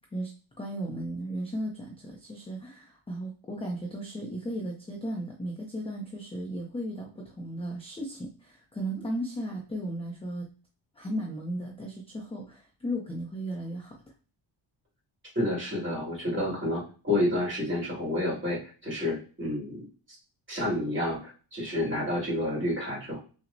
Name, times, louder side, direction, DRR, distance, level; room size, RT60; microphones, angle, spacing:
voice 1, 0.6-10.5 11.0-13.9, right 1 dB, 15° left, 0 dB, 0.4 m, -35 dB
voice 2, 15.4-19.8 20.5-23.2, left 1 dB, 25° right, -5 dB, 2.0 m, -29 dB
5.6 x 2.1 x 2.6 m, 0.37 s
wide cardioid pair, 150°, 45 cm